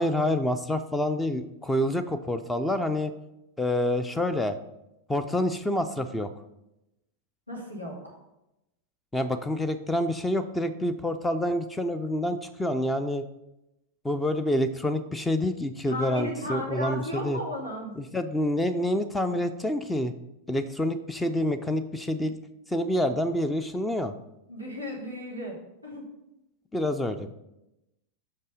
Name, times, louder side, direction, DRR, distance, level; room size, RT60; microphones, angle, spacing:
voice 1, 0.0-3.1 3.6-4.6 5.1-6.3 9.1-13.2 14.0-17.4 18.1-20.1 20.5-22.3 22.7-24.1 26.7-27.3, left 1 dB, 10° left, 11 dB, 0.4 m, -27 dB
voice 2, 7.5-8.1 15.9-17.9 24.5-25.6 25.8-26.0, left 1 dB, 85° left, -3 dB, 2.0 m, -34 dB
5.9 x 5.4 x 5.2 m, 0.90 s
figure-of-eight pair, 90°, 0 cm